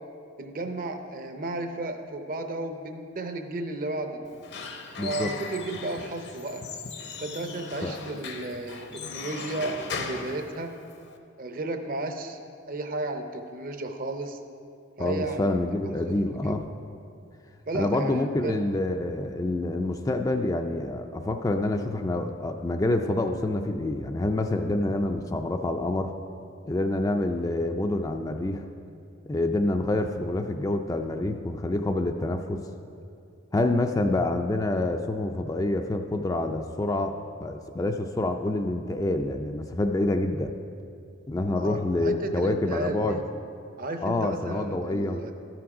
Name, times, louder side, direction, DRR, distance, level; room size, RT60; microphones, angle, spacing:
voice 1, 0.4-4.3 5.0-6.6 7.2-10.7 11.4-12.4 12.7-14.4 15.0-15.6 16.1-16.6 17.7-18.6 41.6-43.2 43.8-45.3, right 2 dB, 45° right, 6 dB, 0.6 m, -33 dB
Squeak / Wood, 4.3-11.2, left 4 dB, 60° left, 0.7 m, -38 dB
voice 2, 5.0-5.3 7.8-7.9 15.0-16.6 17.7-26.1 26.7-28.7 29.3-32.6 33.5-37.1 37.4-40.5 41.3-43.2 44.0-45.2, left 2 dB, 15° left, 5 dB, 0.3 m, -27 dB
13.0 x 6.0 x 4.8 m, 2.5 s
head